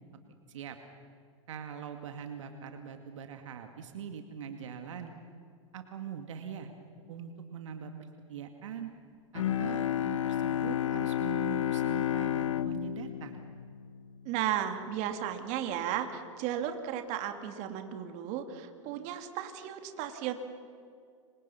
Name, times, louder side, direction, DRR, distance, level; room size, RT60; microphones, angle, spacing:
voice 1, 1.5-5.1 5.7-6.7 7.1-7.9 8.3-8.9 9.3-13.4, right 8 dB, 75° right, 6 dB, 2.2 m, -42 dB
Bowed string instrument, 9.3-14.5, left 11 dB, 85° left, 1.1 m, -31 dB
voice 2, 14.2-20.3, right 10 dB, 50° right, 6 dB, 2.8 m, -34 dB
29.0 x 25.0 x 5.8 m, 2.3 s
hypercardioid pair, 105°, 16 cm